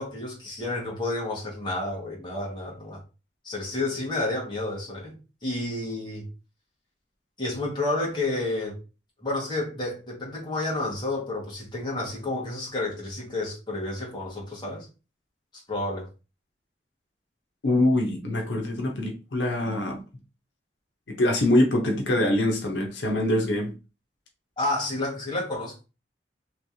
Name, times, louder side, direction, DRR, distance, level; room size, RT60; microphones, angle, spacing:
voice 1, 0.0-3.0 3.4-6.2 7.4-8.8 9.2-14.9 15.7-16.1 24.6-25.8, left 2 dB, 25° left, 1.5 m, -30 dB
voice 2, 17.6-20.0 21.1-23.8, left 1 dB, 85° left, 0.8 m, -24 dB
3.2 x 3.1 x 2.6 m
head